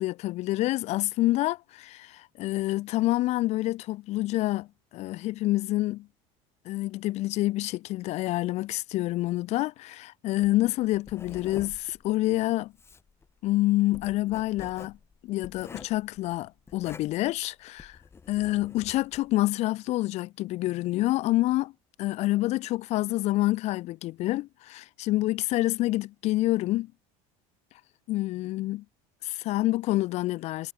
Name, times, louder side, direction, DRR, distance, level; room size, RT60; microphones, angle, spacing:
voice 1, 0.0-4.7 4.9-6.1 6.6-12.7 13.4-15.0 15.2-18.0 18.3-21.7 22.0-26.9 28.1-28.8 29.2-30.7, left 17 dB, 40° left, 0.8 m, -27 dB
Writing, 10.4-19.4, left 5 dB, 15° left, 6.1 m, -48 dB
cardioid pair, 175°, 17 cm